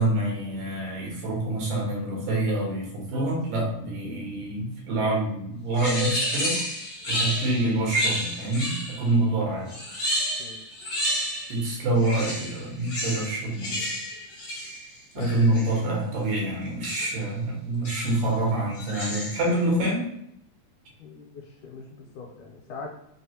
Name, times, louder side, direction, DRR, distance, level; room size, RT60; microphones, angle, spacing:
voice 1, 0.0-6.6 7.1-9.7 11.5-13.9 15.1-20.1, right 2 dB, 90° right, -2 dB, 2.7 m, -26 dB
sound 1, 5.8-9.1 9.7-11.7 12.0-15.8 16.8-17.2 17.8-18.3 18.7-19.5, equal, 65° left, 1.0 m, -31 dB
voice 2, 21.0-23.0, left 5 dB, 80° left, -2 dB, 2.0 m, -40 dB
5.5 x 2.0 x 2.8 m, 0.75 s
omnidirectional pair, 3.6 m